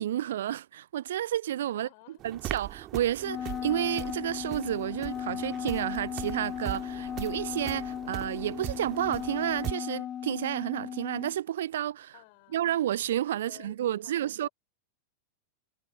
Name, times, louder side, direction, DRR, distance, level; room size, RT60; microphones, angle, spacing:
voice 1, 0.0-1.9 2.2-12.1 12.5-14.5, right 12 dB, 60° right, 0.3 m, -31 dB
voice 2, 1.7-2.2 12.1-12.8 13.4-14.5, left 32 dB, 45° left, 5.4 m, -55 dB
sound 1, 2.2-9.7, right 14 dB, 35° right, 1.8 m, -40 dB
Wind instrument woodwind instrument, 3.2-11.3, left 9 dB, 25° left, 0.6 m, -36 dB
figure-of-eight pair, 90°, 0 cm